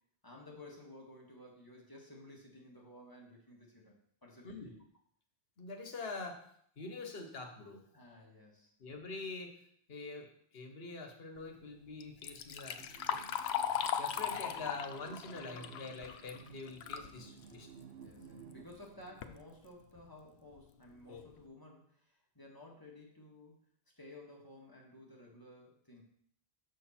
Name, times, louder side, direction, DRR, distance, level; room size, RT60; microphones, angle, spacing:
voice 1, 0.2-4.8 7.9-8.7 14.1-14.5 16.9-17.4 18.0-23.5 24.0-26.0, left 1 dB, 20° left, -3 dB, 1.7 m, -55 dB
voice 2, 5.6-6.4 6.8-7.8 8.8-9.6 9.9-13.2 14.0-17.7, left 3 dB, 70° left, 5 dB, 1.3 m, -45 dB
Liquid, 12.0-17.1 17.5-17.6 18.5-18.6 19.0-19.4 20.0-20.1 20.6-20.7 21.1-21.3, left 8 dB, 85° left, 0.9 m, -38 dB
sound 1, 12.8-18.7, right 7 dB, 70° right, 0.8 m, -56 dB
6.4 x 6.4 x 4.3 m, 0.64 s
omnidirectional pair, 1.1 m